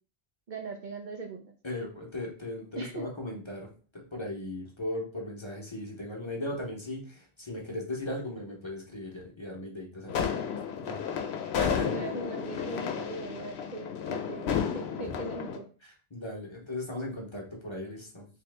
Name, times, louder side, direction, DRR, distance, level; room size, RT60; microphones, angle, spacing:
voice 1, 0.5-1.5 2.8-3.0 11.6-14.5 14.7-15.6, right 3 dB, 55° right, 3 dB, 0.6 m, -40 dB
voice 2, 1.6-3.7 3.9-10.4 10.8-11.0 11.6-12.0 15.8-18.3, left 1 dB, 30° left, -2 dB, 0.9 m, -38 dB
sound 1, 10.1-15.6, left 7 dB, 85° left, 0.9 m, -32 dB
3.5 x 3.0 x 3.3 m, 0.38 s
omnidirectional pair, 1.0 m